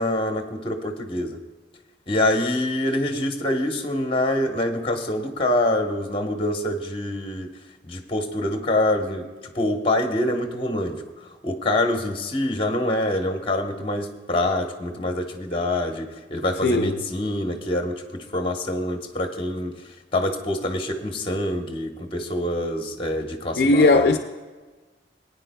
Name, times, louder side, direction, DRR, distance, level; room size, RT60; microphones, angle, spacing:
voice 1, 0.0-1.4 2.1-7.5 7.8-9.2 9.5-11.0 11.4-19.7 20.1-24.1, left 1 dB, 30° left, 4 dB, 1.1 m, -25 dB
voice 2, 16.6-17.0 23.6-24.2, left 2 dB, 55° left, 5 dB, 0.5 m, -18 dB
20.0 x 9.7 x 2.2 m, 1.3 s
head